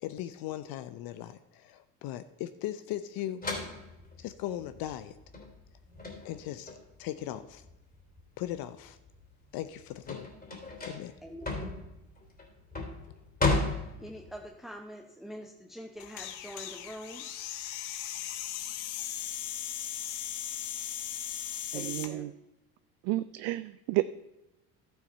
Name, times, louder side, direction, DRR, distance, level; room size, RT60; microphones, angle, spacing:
voice 1, 0.0-3.4 4.2-5.1 6.2-6.7 7.0-7.6 8.4-9.0 9.5-10.3 10.9-11.1, left 13 dB, 55° left, 12 dB, 0.7 m, -38 dB
sound 1, 3.4-8.4 8.9-14.5, left 2 dB, 20° left, 3.2 m, -34 dB
voice 2, 11.2-11.6 14.0-17.2 21.7-22.3, equal, ahead, 3 dB, 0.9 m, -44 dB
sound 2, 16.0-22.1, left 11 dB, 70° left, 1.2 m, -38 dB
voice 3, 21.7-22.3 23.0-24.0, right 19 dB, 60° right, 14 dB, 0.5 m, -31 dB
12.0 x 7.1 x 5.4 m, 0.97 s
hypercardioid pair, 75°, 44 cm